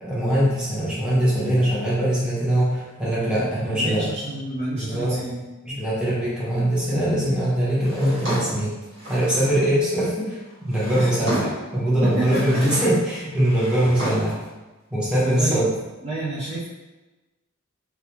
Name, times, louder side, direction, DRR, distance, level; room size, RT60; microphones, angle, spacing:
voice 1, 0.0-4.1 4.7-5.2 5.6-8.8 9.1-14.4 14.9-15.7, right 1 dB, 5° right, -9 dB, 0.8 m, -22 dB
voice 2, 3.4-5.4 10.9-11.1 12.0-12.6 15.2-15.6 16.0-16.7, right 2 dB, 30° right, -8 dB, 0.4 m, -29 dB
Drawer open or close, 7.8-9.6 10.4-11.7 12.1-13.0 13.3-14.5, equal, 55° right, 1.3 m, -32 dB
2.4 x 2.1 x 2.9 m, 1.1 s
head